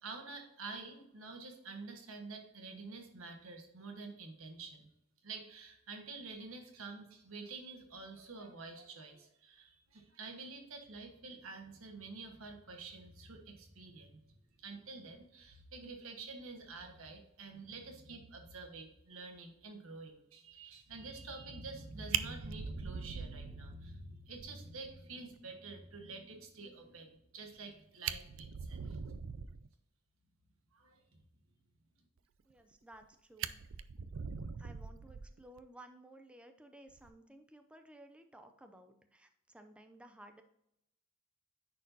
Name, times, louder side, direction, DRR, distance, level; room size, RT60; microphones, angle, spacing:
voice 1, 0.0-4.9 5.2-14.2 14.6-29.0 30.7-31.2, right 3 dB, 90° right, 3 dB, 1.4 m, -48 dB
Fire, 21.7-21.8 22.1-24.0 24.4-24.5 24.9-25.0 25.3-25.4 27.6-27.7 27.9-29.7 32.5-33.0 33.4-35.6 36.9-37.1, right 8 dB, 70° right, 0.4 m, -41 dB
voice 2, 32.5-33.6 34.6-40.4, right 1 dB, 5° right, 6 dB, 0.4 m, -56 dB
10.0 x 4.3 x 2.7 m, 0.81 s
head